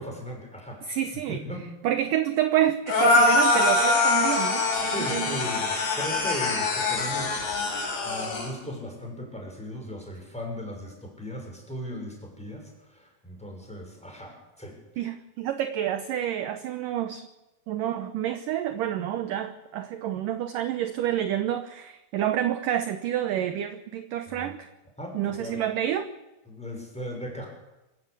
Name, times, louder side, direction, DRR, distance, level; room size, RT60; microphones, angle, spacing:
voice 1, 0.0-1.0 1.3-1.7 4.8-7.5 8.0-14.8 24.3-24.5 25.0-25.6 26.5-27.5, equal, ahead, 1 dB, 6.2 m, -37 dB
voice 2, 0.8-1.4 1.8-5.4 15.0-17.3 17.7-24.7 25.1-26.1, right 11 dB, 70° right, 9 dB, 2.1 m, -28 dB
sound 1, 2.9-8.5, left 3 dB, 65° left, 7.1 m, -23 dB
26.0 x 15.0 x 8.4 m, 0.99 s
omnidirectional pair, 5.0 m